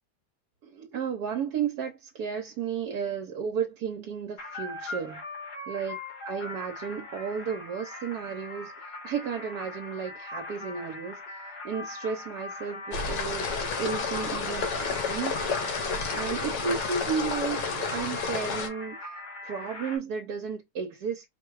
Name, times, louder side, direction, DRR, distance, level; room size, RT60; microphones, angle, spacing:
voice 1, 0.6-5.2 5.7-6.0 6.2-15.5 16.1-21.3, right 6 dB, 70° right, 1.2 m, -33 dB
sound 1, 4.4-20.0, left 2 dB, 70° left, 2.7 m, -41 dB
sound 2, 12.9-18.7, left 4 dB, 85° left, 1.8 m, -30 dB
4.7 x 2.3 x 4.6 m
omnidirectional pair, 1.8 m